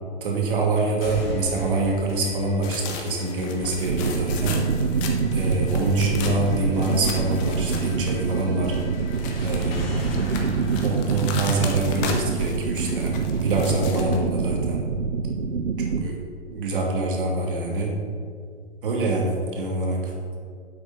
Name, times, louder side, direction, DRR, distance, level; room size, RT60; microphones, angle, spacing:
voice 1, 0.2-4.6 5.3-8.7 9.4-9.8 10.8-14.9 15.8-16.2 16.5-17.9 18.8-20.1, right 2 dB, 50° right, 0 dB, 2.5 m, -25 dB
sound 1, 1.0-13.0, left 2 dB, 55° left, 2.3 m, -37 dB
sound 2, 2.6-8.4 8.7-14.2, left 5 dB, 20° left, 1.1 m, -36 dB
sound 3, 3.8-16.1, right 5 dB, 70° right, 0.7 m, -25 dB
9.6 x 7.8 x 5.4 m, 2.1 s
figure-of-eight pair, 120°, 35 cm